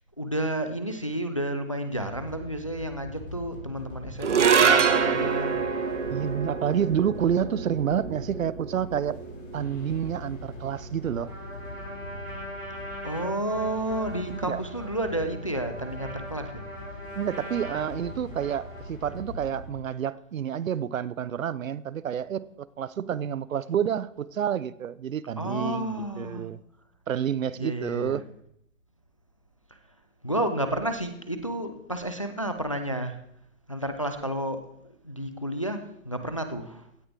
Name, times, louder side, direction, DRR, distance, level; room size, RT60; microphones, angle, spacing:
voice 1, 0.2-5.6 13.0-16.6 25.4-26.5 27.6-28.2 30.2-33.1 33.7-34.6 35.0-36.8, right 1 dB, 25° left, 0.5 m, -31 dB
sound 1, 2.1-19.8, left 1 dB, 65° left, 6.0 m, -42 dB
sound 2, 4.2-10.7, right 6 dB, 60° right, 1.4 m, -26 dB
voice 2, 6.1-9.2 9.5-11.3 14.4-14.6 17.2-26.6 27.1-28.3, right 9 dB, 75° right, 0.7 m, -29 dB
Trumpet, 11.2-19.3, equal, 10° right, 2.8 m, -42 dB
16.5 x 9.6 x 3.4 m
hypercardioid pair, 180°, 40 cm